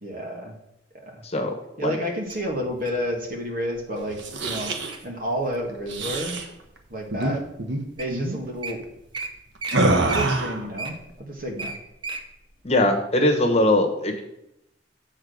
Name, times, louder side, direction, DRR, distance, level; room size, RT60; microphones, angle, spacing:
voice 1, 0.0-0.5 1.0-1.2 1.8-4.7 5.0-6.4 6.9-7.4 8.0-8.8 10.0-11.8, equal, 50° right, 2 dB, 1.7 m, -30 dB
voice 2, 1.2-1.5 1.8-2.0 12.6-14.1, left 1 dB, 35° left, 2 dB, 1.2 m, -21 dB
Wild animals, 2.3-3.0 3.7-4.0 4.5-5.0 5.5-6.4 7.0-7.1 7.7-7.8 8.0-8.2 8.4-8.7 9.1-9.3 9.6-9.8 10.1-12.2 12.7-12.8, right 3 dB, 25° right, 0.8 m, -34 dB
sound 1, 4.1-5.0 5.9-6.5 7.1-7.3 7.6-7.8 8.1-8.4 9.7-10.6, right 2 dB, 80° right, 1.1 m, -25 dB
7.5 x 4.5 x 6.4 m, 0.84 s
head